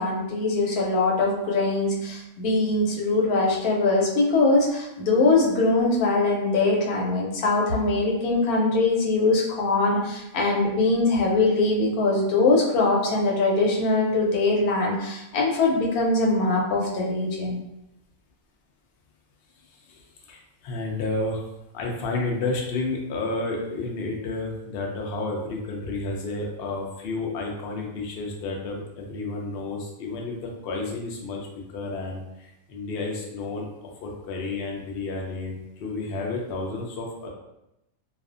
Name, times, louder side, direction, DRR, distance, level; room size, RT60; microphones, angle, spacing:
voice 1, 0.0-17.6, left 3 dB, 85° left, -2 dB, 1.1 m, -22 dB
voice 2, 19.7-21.4 21.7-33.7 34.0-37.3, left 2 dB, 70° left, 0 dB, 0.5 m, -31 dB
2.5 x 2.3 x 2.4 m, 0.87 s
omnidirectional pair, 1.5 m